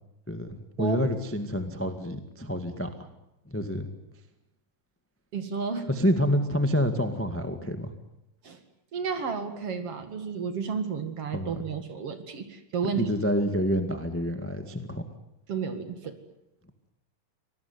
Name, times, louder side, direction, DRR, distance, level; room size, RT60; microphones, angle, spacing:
voice 1, 0.3-3.1 3.5-3.9 5.9-7.9 11.3-11.6 12.9-15.0, equal, 10° left, 7 dB, 0.7 m, -28 dB
voice 2, 5.3-5.9 8.4-8.6 8.9-13.1 15.5-16.2, right 6 dB, 45° right, 8 dB, 2.7 m, -32 dB
25.5 x 19.0 x 9.6 m, 0.87 s
omnidirectional pair, 3.9 m